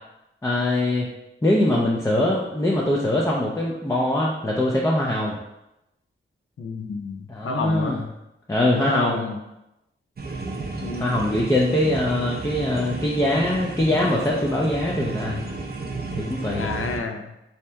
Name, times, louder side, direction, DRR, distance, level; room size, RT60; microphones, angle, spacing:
voice 1, 0.4-1.1 1.4-5.4 7.3-8.0 8.5-9.2 11.0-15.4 16.2-16.7, left 1 dB, 15° left, -3 dB, 0.5 m, -22 dB
voice 2, 6.6-7.9 8.8-9.4 10.8-11.1 16.5-17.3, left 4 dB, 80° left, 4 dB, 0.5 m, -29 dB
sound 1, 10.2-17.0, right 3 dB, 50° right, 0.5 m, -32 dB
3.2 x 2.8 x 3.3 m, 0.90 s
wide cardioid pair, 75°, 21 cm